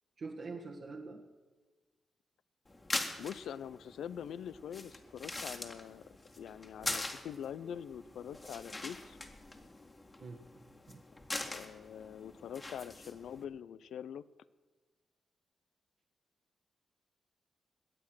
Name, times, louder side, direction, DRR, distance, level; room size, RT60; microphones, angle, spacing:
voice 1, 0.2-1.3 6.8-7.0 10.2-10.4 10.9-11.0, right 3 dB, 65° right, -2 dB, 1.6 m, -45 dB
sound 1, 2.7-13.4, left 2 dB, 35° left, 2.0 m, -43 dB
voice 2, 3.2-9.2 11.5-14.2, left 9 dB, 80° left, 18 dB, 0.4 m, -44 dB
21.5 x 8.5 x 6.2 m, 1.2 s
supercardioid pair, 50°, 0 cm